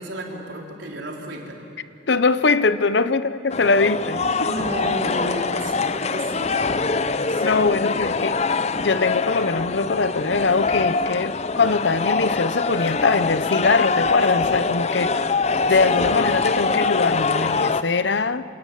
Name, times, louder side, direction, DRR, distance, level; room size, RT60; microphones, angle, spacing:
voice 1, 0.0-1.6 4.4-7.5 15.7-16.2, right 1 dB, 75° right, -1 dB, 4.2 m, -33 dB
voice 2, 2.1-4.5 7.4-8.4 8.8-15.2 15.7-18.4, left 4 dB, 65° left, 13 dB, 0.8 m, -22 dB
sound 1, 3.5-17.8, left 4 dB, 35° left, 0.6 m, -23 dB
27.5 x 18.5 x 9.4 m, 2.7 s
head